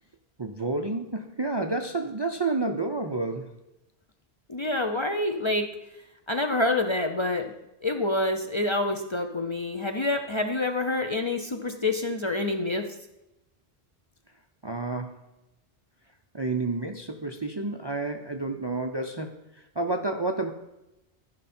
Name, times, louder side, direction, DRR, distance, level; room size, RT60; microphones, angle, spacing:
voice 1, 0.4-3.5 14.6-15.2 16.3-19.4 19.8-20.5, right 3 dB, 35° right, 5 dB, 0.5 m, -30 dB
voice 2, 4.5-5.7 6.3-7.5 7.8-12.9, left 2 dB, 35° left, 5 dB, 0.5 m, -27 dB
13.5 x 5.6 x 4.3 m, 0.94 s
omnidirectional pair, 1.1 m